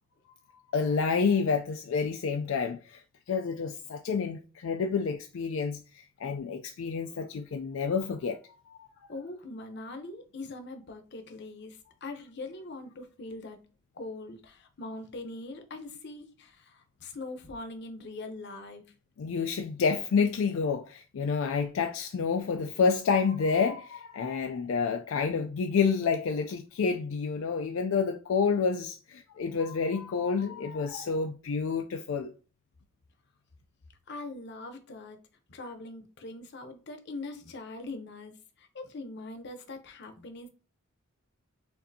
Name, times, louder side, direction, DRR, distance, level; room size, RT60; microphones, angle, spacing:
voice 1, 0.7-8.4 8.7-8.9 19.2-32.3, left 5 dB, 75° left, 0.4 m, -29 dB
voice 2, 9.1-13.6 13.9-18.9 34.1-35.2 35.5-40.5, left 2 dB, 55° left, 0.7 m, -42 dB
6.4 x 2.6 x 2.7 m
head